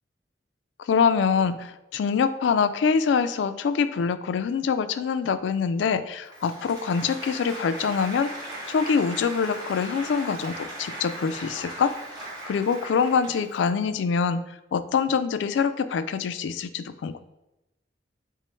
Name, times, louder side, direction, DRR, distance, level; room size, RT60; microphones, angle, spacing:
voice 1, 0.9-8.3 8.7-11.9 12.4-14.4 14.7-17.2, left 6 dB, 85° left, 12 dB, 0.3 m, -24 dB
Applause, 6.2-13.7, right 1 dB, 25° right, 1.4 m, -38 dB
5.9 x 2.1 x 4.4 m, 0.95 s
head